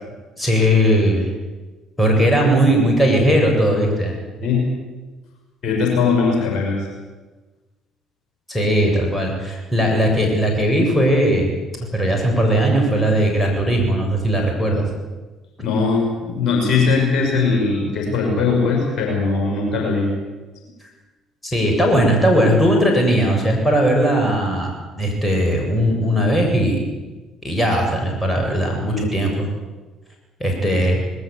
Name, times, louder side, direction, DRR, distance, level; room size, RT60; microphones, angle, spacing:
voice 1, 0.4-1.3 2.0-4.2 8.5-11.5 11.9-14.8 21.4-24.7 25.0-26.8 27.4-29.5 30.4-31.0, equal, 10° left, 1 dB, 7.5 m, -18 dB
voice 2, 5.6-6.9 15.6-20.1 28.8-29.1, left 4 dB, 50° left, 0 dB, 6.1 m, -20 dB
20.0 x 19.0 x 8.4 m, 1.2 s
figure-of-eight pair, 50°, 0 cm